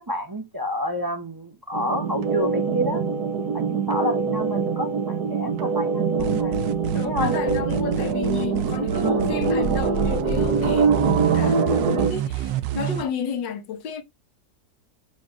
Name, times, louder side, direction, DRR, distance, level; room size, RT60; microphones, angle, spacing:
voice 1, 0.0-3.0 3.5-6.6 7.0-7.3 8.9-9.3, equal, 20° right, 0.6 m, -29 dB
sound 1, 1.7-12.1, right 5 dB, 65° right, 1.5 m, -24 dB
sound 2, 6.2-13.0, right 8 dB, 85° right, 1.4 m, -28 dB
voice 2, 6.9-14.0, left 6 dB, 80° left, 1.7 m, -32 dB
7.5 x 2.5 x 5.3 m
omnidirectional pair, 1.9 m